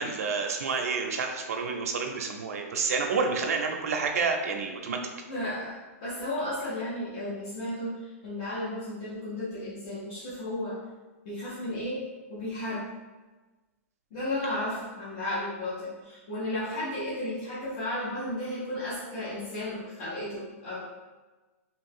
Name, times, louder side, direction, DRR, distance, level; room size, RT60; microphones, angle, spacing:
voice 1, 0.0-5.0, right 4 dB, 70° right, 3 dB, 0.6 m, -29 dB
voice 2, 5.3-8.0 8.2-10.8 11.2-12.0 12.3-12.8 14.1-20.8, left 1 dB, 35° left, -11 dB, 0.9 m, -34 dB
2.8 x 2.6 x 3.6 m, 1.2 s
hypercardioid pair, 180°, 8 cm